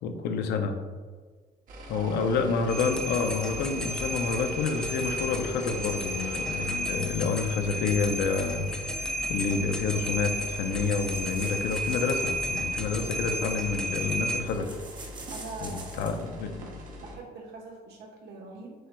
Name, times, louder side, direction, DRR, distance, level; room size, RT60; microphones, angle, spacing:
voice 1, 0.0-0.8 1.9-14.8 15.6-16.7, left 4 dB, 75° left, 6 dB, 0.5 m, -29 dB
sound 1, 1.7-17.2, left 1 dB, 55° right, 1.0 m, -44 dB
voice 2, 1.9-2.4 15.3-16.2 17.0-18.7, right 3 dB, 75° right, 0 dB, 1.1 m, -42 dB
sound 2, 2.7-14.4, equal, 5° left, 0.5 m, -33 dB
sound 3, 10.1-16.3, right 3 dB, 25° right, 0.8 m, -48 dB
7.6 x 3.0 x 2.2 m, 1.5 s
cardioid pair, 110°, 17 cm